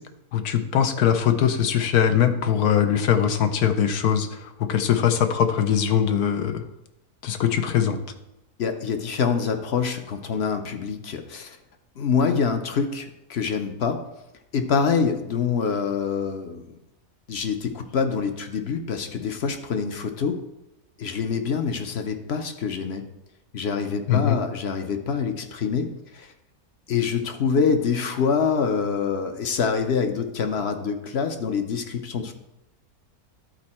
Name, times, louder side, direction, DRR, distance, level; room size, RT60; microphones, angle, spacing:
voice 1, 0.3-6.6 7.2-8.0 24.1-24.4, left 8 dB, 80° left, 7 dB, 1.2 m, -21 dB
voice 2, 8.6-11.6 12.0-14.0 14.5-16.8 17.3-20.4 21.0-23.0 23.5-26.3 26.9-32.3, left 6 dB, 55° left, 6 dB, 0.8 m, -25 dB
11.5 x 4.4 x 4.3 m, 0.89 s
omnidirectional pair, 1.6 m